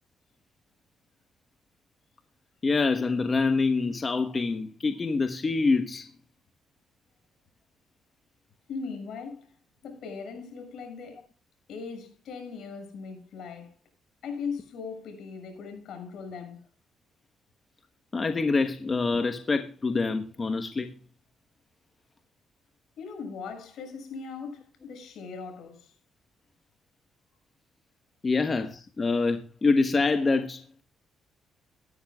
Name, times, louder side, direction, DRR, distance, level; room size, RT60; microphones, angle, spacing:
voice 1, 2.6-6.1 18.1-20.9 28.2-30.6, left 4 dB, 30° left, 1.2 m, -26 dB
voice 2, 8.7-9.5 9.8-11.2 11.7-13.7 14.2-16.6 23.0-25.9, left 5 dB, 75° left, 6.7 m, -39 dB
18.5 x 13.0 x 2.4 m
cardioid pair, 90°, 0 cm